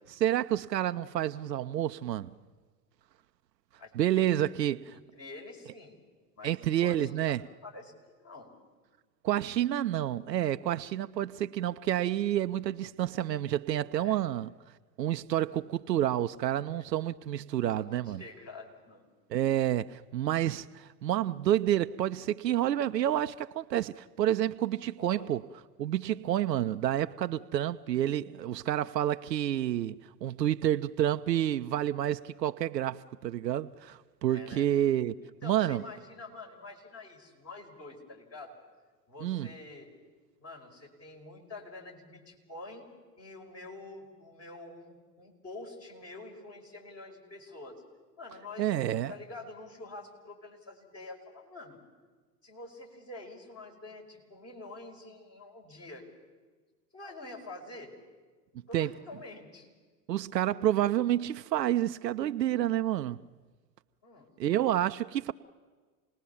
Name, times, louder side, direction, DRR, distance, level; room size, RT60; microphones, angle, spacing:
voice 1, 0.2-2.3 4.0-4.9 6.4-7.4 9.2-14.5 15.0-18.2 19.3-25.4 25.8-35.1 35.4-35.8 39.2-39.5 48.6-49.1 58.7-58.9 60.1-63.2 64.4-65.3, right 12 dB, 90° right, 0.6 m, -29 dB
voice 2, 3.8-6.0 6.4-8.5 14.0-14.3 16.7-16.9 17.8-19.1 25.0-25.3 34.3-34.7 35.2-38.6 39.1-39.9 40.4-42.9 43.2-47.8 48.2-48.8 49.1-51.8 52.4-56.0 56.9-58.0 58.7-59.7 64.0-64.3, left 2 dB, 30° left, 5.6 m, -47 dB
28.0 x 19.5 x 7.1 m
hypercardioid pair, 85°, 48 cm